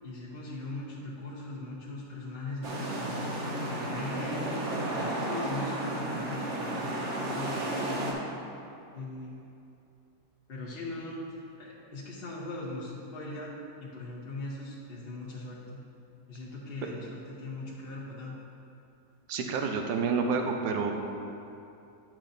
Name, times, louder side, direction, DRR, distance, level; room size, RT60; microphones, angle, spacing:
voice 1, 0.0-3.2 3.6-4.6 5.0-8.2 8.9-9.4 10.5-13.5 13.8-15.8 16.3-18.3, left 2 dB, 45° left, -6 dB, 0.9 m, -40 dB
sound 1, 2.6-8.1, right 1 dB, 50° right, 1.0 m, -33 dB
voice 2, 19.3-20.9, right 5 dB, 70° right, 3 dB, 1.2 m, -29 dB
9.9 x 6.0 x 2.6 m, 2.7 s
omnidirectional pair, 1.9 m